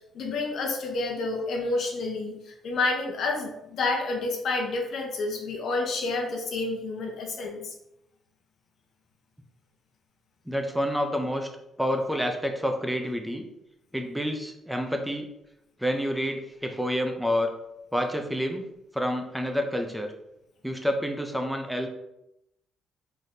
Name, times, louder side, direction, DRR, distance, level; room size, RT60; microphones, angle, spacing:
voice 1, 0.1-7.7, left 3 dB, 65° left, 1 dB, 0.8 m, -29 dB
voice 2, 10.5-11.5 11.8-13.5 13.9-15.3 15.8-17.5 17.9-18.7 18.9-20.1 20.6-21.9, equal, 5° right, 4 dB, 0.5 m, -28 dB
3.9 x 3.2 x 2.7 m, 0.83 s
cardioid pair, 90°, 0 cm